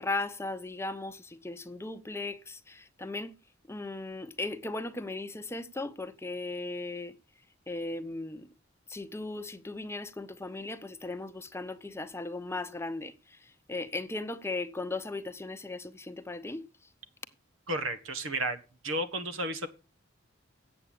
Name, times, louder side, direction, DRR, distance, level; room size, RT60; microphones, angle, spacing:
voice 1, 0.0-3.3 3.7-7.1 7.7-8.5 8.9-13.4 13.7-16.6, left 2 dB, 15° left, 0.8 m, -37 dB
voice 2, 17.7-18.6 18.8-19.7, right 1 dB, 85° right, 1.7 m, -32 dB
8.4 x 7.8 x 8.6 m
head